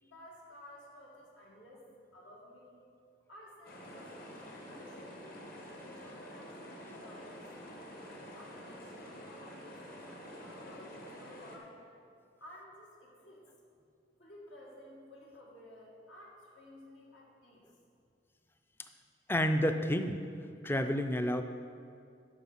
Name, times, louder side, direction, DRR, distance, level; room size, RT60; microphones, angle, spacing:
voice 1, 0.0-1.9 2.1-2.8 3.3-5.3 5.8-7.7 8.3-11.9 12.4-13.4 14.2-17.7, left 1 dB, 80° left, -4 dB, 2.1 m, -54 dB
sound 1, 3.6-11.6, equal, 50° left, 1.3 m, -48 dB
voice 2, 19.3-20.2 20.6-21.4, equal, 10° left, 7 dB, 0.4 m, -29 dB
11.0 x 5.7 x 5.7 m, 2.4 s
head